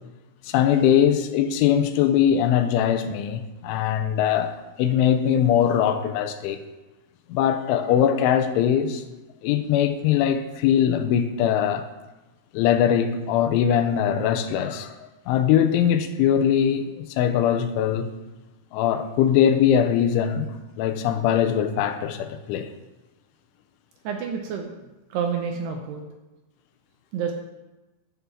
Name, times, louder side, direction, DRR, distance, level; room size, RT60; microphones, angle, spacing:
voice 1, 0.5-6.6 7.3-9.0 9.4-11.9 12.5-14.9 15.3-18.1 18.7-20.5 20.8-22.7, left 9 dB, 85° left, 3.1 m, -21 dB
voice 2, 24.0-24.8 25.1-26.0 27.1-27.3, right 6 dB, 80° right, 2.6 m, -28 dB
11.0 x 6.0 x 7.1 m
omnidirectional pair, 5.5 m